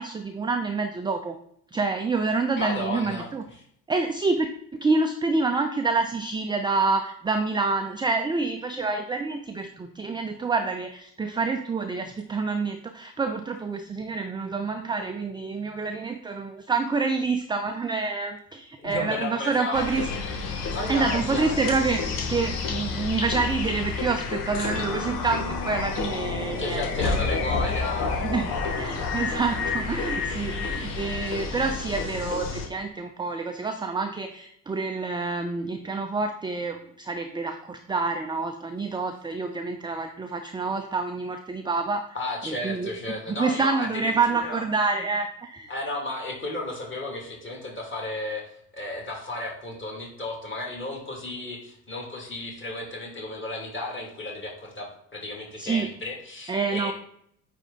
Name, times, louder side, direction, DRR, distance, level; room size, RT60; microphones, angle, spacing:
voice 1, 0.0-1.4 1.7-3.4 3.9-20.1 20.9-22.0 22.3-27.2 28.2-42.0 42.5-42.9 43.3-45.7 55.6-55.9 56.5-56.9, right 4 dB, 10° right, 5 dB, 0.5 m, -27 dB
voice 2, 2.6-3.3 18.8-19.9 20.7-21.6 26.6-28.7 42.1-44.6 45.7-56.9, left 2 dB, 25° left, 0 dB, 2.6 m, -33 dB
sound 1, 19.7-32.7, left 4 dB, 75° left, 1.2 m, -29 dB
8.9 x 3.3 x 3.8 m, 0.68 s
figure-of-eight pair, 60°, 47 cm